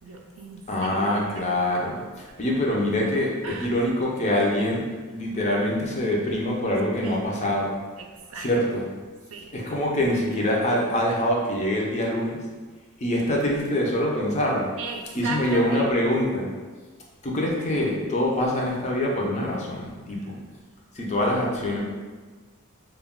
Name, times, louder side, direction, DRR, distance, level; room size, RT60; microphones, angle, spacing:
voice 1, 0.0-1.6 3.4-3.8 7.0-7.5 8.0-8.5 9.3-9.5 14.8-16.0 20.2-20.3, right 4 dB, 70° right, 2 dB, 0.4 m, -37 dB
voice 2, 0.7-7.7 8.4-8.8 9.5-12.4 13.0-14.7 15.1-16.5 17.2-20.4 20.9-21.8, left 1 dB, 35° left, -2 dB, 0.5 m, -25 dB
2.3 x 2.2 x 3.5 m, 1.4 s
head